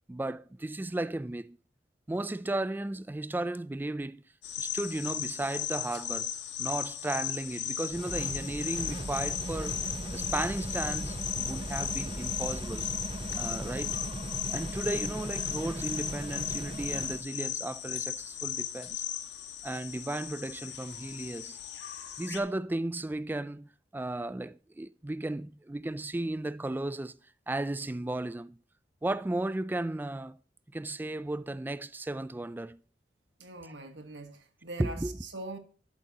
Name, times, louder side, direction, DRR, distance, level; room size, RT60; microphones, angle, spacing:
voice 1, 0.1-1.6 2.1-4.2 4.6-6.3 6.6-9.8 10.1-12.9 13.3-14.0 14.5-19.0 19.6-21.6 22.2-27.1 27.5-28.6 29.0-30.4 30.7-32.8 34.8-35.1, right 2 dB, 10° right, 0.3 m, -35 dB
sound 1, 4.4-22.4, left 10 dB, 75° left, 1.3 m, -36 dB
sound 2, 7.9-17.3, right 1 dB, 30° right, 0.8 m, -38 dB
voice 2, 33.4-35.6, right 2 dB, 90° right, 1.5 m, -42 dB
11.5 x 8.1 x 2.9 m
head